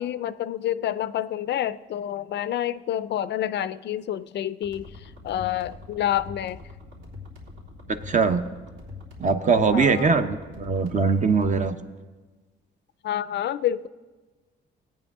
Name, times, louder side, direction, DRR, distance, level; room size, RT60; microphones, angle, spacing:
voice 1, 0.0-6.6 9.7-10.1 13.0-13.9, left 11 dB, 60° left, 16 dB, 0.4 m, -28 dB
sound 1, 4.6-11.6, left 3 dB, 85° right, 3.6 m, -43 dB
voice 2, 8.1-8.4 9.2-11.8, right 5 dB, 40° right, 9 dB, 0.8 m, -21 dB
17.5 x 8.9 x 3.6 m, 1.3 s
cardioid pair, 90°, 20 cm